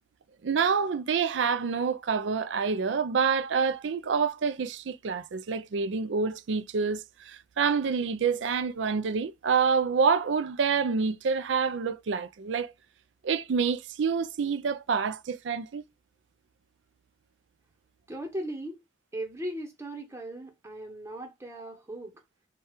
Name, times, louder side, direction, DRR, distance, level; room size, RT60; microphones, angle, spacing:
voice 1, 0.4-12.7 13.2-15.8, right 5 dB, 65° right, 0.4 m, -27 dB
voice 2, 18.1-18.8 19.1-22.2, right 1 dB, 15° right, 0.8 m, -38 dB
4.7 x 2.3 x 4.3 m
head